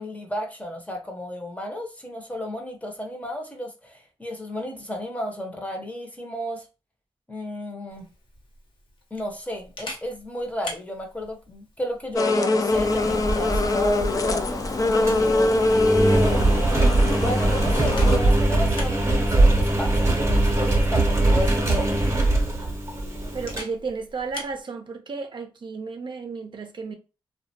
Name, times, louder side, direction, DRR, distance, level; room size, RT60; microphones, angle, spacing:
voice 1, 0.0-6.7 7.3-8.1 9.1-15.6 16.3-22.2, left 1 dB, 15° left, 0.8 m, -33 dB
Camera, 7.9-24.6, left 1 dB, 65° left, 0.8 m, -43 dB
sound 1, 12.2-18.2, left 2 dB, 40° left, 0.3 m, -23 dB
Engine, 12.7-23.6, right 2 dB, 30° right, 0.8 m, -22 dB
voice 2, 23.3-26.9, right 4 dB, 60° right, 0.5 m, -33 dB
2.3 x 2.2 x 2.7 m
cardioid pair, 65°, 9 cm